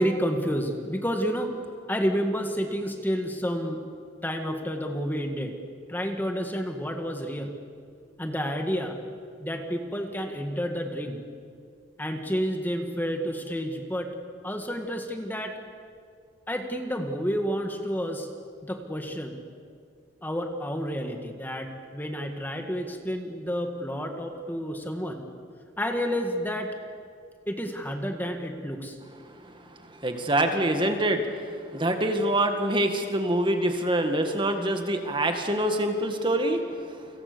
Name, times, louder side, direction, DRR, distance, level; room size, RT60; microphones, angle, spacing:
voice 1, 0.0-1.5 1.9-3.8 4.2-5.5 5.9-7.5 8.2-9.0 9.4-11.2 12.0-14.1 14.4-15.5 16.5-18.3 18.6-19.3 20.2-25.2 25.8-26.7 27.5-29.0, equal, 10° left, 4 dB, 1.8 m, -30 dB
voice 2, 30.0-31.4 31.7-36.6, right 1 dB, 25° right, 5 dB, 1.9 m, -25 dB
30.0 x 26.0 x 7.0 m, 2.3 s
head